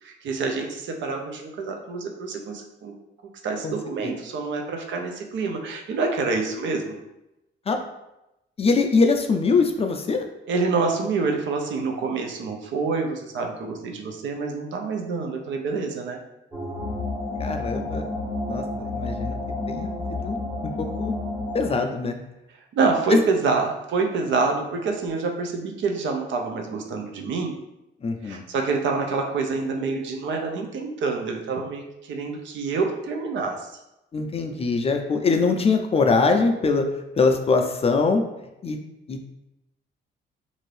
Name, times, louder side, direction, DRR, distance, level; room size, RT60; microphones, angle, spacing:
voice 1, 0.0-2.9 3.4-7.0 10.5-16.2 22.7-27.5 28.2-33.7, right 4 dB, 70° right, 3 dB, 0.5 m, -27 dB
voice 2, 8.6-10.2 17.4-18.0 18.5-19.4 19.7-20.4 20.8-21.2 21.5-22.2 23.1-23.2 28.0-28.4 34.1-36.9 37.2-38.2 38.6-38.8 39.1-39.3, left 4 dB, 30° left, 5 dB, 0.4 m, -22 dB
sound 1, 16.5-21.8, left 2 dB, 20° right, 0.8 m, -30 dB
2.6 x 2.5 x 3.2 m, 0.91 s
cardioid pair, 90°, 20 cm